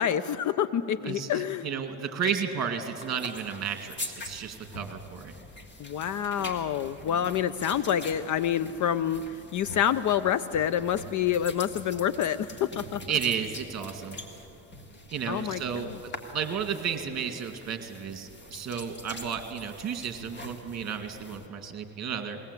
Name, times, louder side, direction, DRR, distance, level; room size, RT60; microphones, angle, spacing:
voice 1, 0.0-1.7 5.8-9.2 9.5-13.0 15.3-16.0, left 9 dB, 45° left, 15 dB, 0.6 m, -27 dB
voice 2, 1.0-5.3 13.1-14.2 15.1-15.9 16.3-22.4, right 7 dB, 35° right, 6 dB, 2.2 m, -33 dB
sound 1, 3.0-21.5, left 1 dB, 25° left, 2.0 m, -44 dB
21.0 x 18.0 x 8.2 m, 2.9 s
cardioid pair, 115°, 44 cm